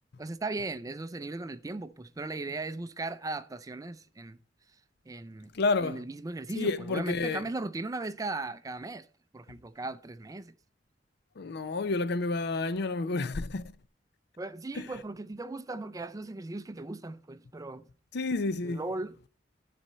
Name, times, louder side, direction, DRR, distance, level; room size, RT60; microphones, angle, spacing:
voice 1, 0.2-4.4 5.1-5.5 5.8-9.1 9.3-10.5 14.4-17.8 18.6-19.1, right 2 dB, 20° right, 0.4 m, -37 dB
voice 2, 5.5-6.0 6.5-7.4 11.4-13.7 14.8-14.9 18.1-18.8, left 3 dB, 60° left, 0.5 m, -30 dB
12.0 x 4.2 x 5.4 m
head